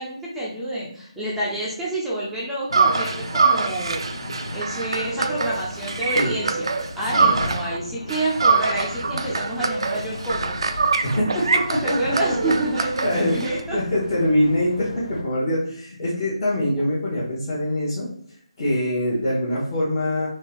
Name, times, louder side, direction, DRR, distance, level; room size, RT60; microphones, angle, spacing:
voice 1, 0.0-4.0 4.5-6.7 6.9-10.5 11.8-13.8, right 1 dB, ahead, -9 dB, 0.6 m, -28 dB
sound 1, 2.7-15.2, left 1 dB, 65° left, 0.8 m, -36 dB
sound 2, 2.7-7.8 8.1-13.6, right 4 dB, 50° right, 0.5 m, -24 dB
voice 2, 11.0-12.2 13.0-13.4 13.7-18.1 18.6-20.3, left 1 dB, 30° left, -8 dB, 1.2 m, -24 dB
4.4 x 2.9 x 3.3 m, 0.62 s
figure-of-eight pair, 150°, 3 cm